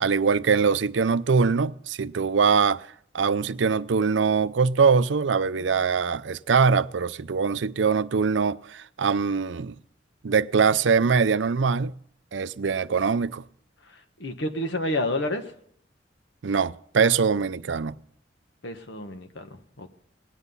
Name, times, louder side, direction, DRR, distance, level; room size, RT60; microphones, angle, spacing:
voice 1, 0.0-2.8 3.1-9.7 10.2-11.9 12.3-13.4 16.4-17.9, right 5 dB, 85° right, 0.5 m, -22 dB
voice 2, 14.2-15.5 18.6-19.9, left 1 dB, 75° left, 1.3 m, -29 dB
18.0 x 10.0 x 5.5 m
head